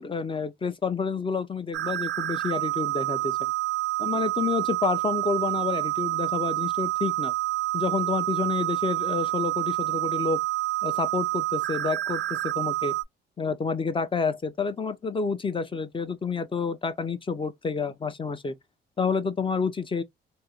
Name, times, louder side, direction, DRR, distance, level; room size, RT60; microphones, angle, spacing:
voice 1, 0.0-3.4 4.0-7.3 7.7-10.4 10.8-12.9 13.4-18.5 19.0-20.0, left 5 dB, 25° left, 0.6 m, -29 dB
sound 1, 1.7-13.0, right 17 dB, 75° right, 0.4 m, -28 dB
3.6 x 2.1 x 2.9 m
cardioid pair, 90°, 20 cm